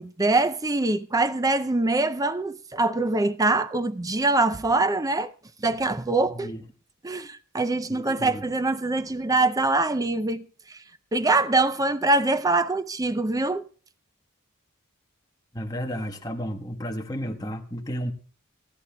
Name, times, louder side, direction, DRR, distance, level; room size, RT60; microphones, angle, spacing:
voice 1, 0.0-5.3 5.6-6.5 7.0-10.8 11.1-13.7, right 2 dB, 15° right, 0.5 m, -24 dB
voice 2, 6.3-6.6 7.9-8.5 15.5-18.1, equal, 15° left, 1.2 m, -32 dB
29.0 x 10.0 x 2.3 m
head